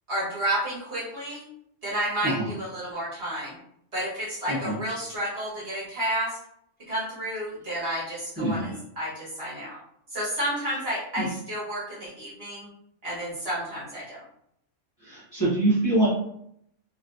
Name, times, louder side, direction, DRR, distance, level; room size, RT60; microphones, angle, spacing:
voice 1, 0.1-1.4 1.8-3.6 3.9-6.4 6.9-9.8 10.1-12.7 13.0-14.2, right 1 dB, 55° right, -8 dB, 1.6 m, -31 dB
voice 2, 8.4-8.7 11.2-11.3 15.0-16.1, right 1 dB, 15° left, -9 dB, 1.1 m, -25 dB
3.0 x 3.0 x 2.6 m, 0.72 s
omnidirectional pair, 1.3 m